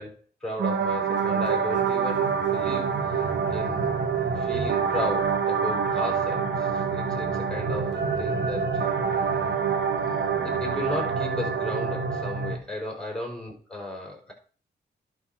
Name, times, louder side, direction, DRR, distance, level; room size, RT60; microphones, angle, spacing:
voice 1, 0.0-3.1 3.5-4.0 4.4-8.8 9.1-9.5 9.9-14.3, left 1 dB, 5° left, 0 dB, 4.8 m, -35 dB
sound 1, 0.6-12.6, right 6 dB, 70° right, 1.4 m, -26 dB
11.0 x 4.3 x 5.9 m, 0.41 s
cardioid pair, 55°, 19 cm